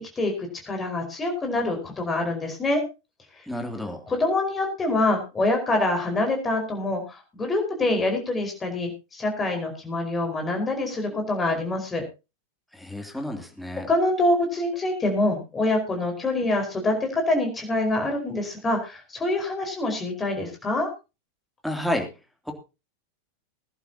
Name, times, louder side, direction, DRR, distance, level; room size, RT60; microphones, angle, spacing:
voice 1, 0.0-2.8 4.1-12.0 13.9-20.9, left 2 dB, 15° left, 4 dB, 4.9 m, -25 dB
voice 2, 3.5-4.0 12.7-13.9 21.6-22.1 22.5-22.6, left 1 dB, ahead, 2 dB, 2.9 m, -30 dB
21.5 x 11.5 x 2.9 m, 0.29 s
figure-of-eight pair, 90°, 0 cm